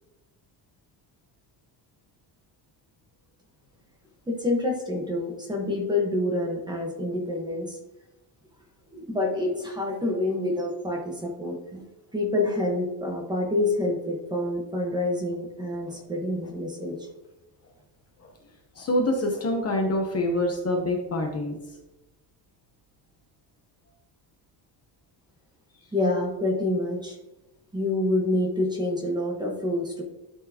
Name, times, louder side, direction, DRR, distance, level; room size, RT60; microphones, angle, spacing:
voice 1, 4.3-7.8 8.9-11.8 12.1-17.1 25.9-27.2 27.7-30.0, left 2 dB, 10° right, 0 dB, 1.2 m, -27 dB
voice 2, 18.8-21.6, left 1 dB, 35° left, 3 dB, 0.8 m, -26 dB
11.5 x 4.6 x 2.8 m, 0.99 s
cardioid pair, 175°, 43 cm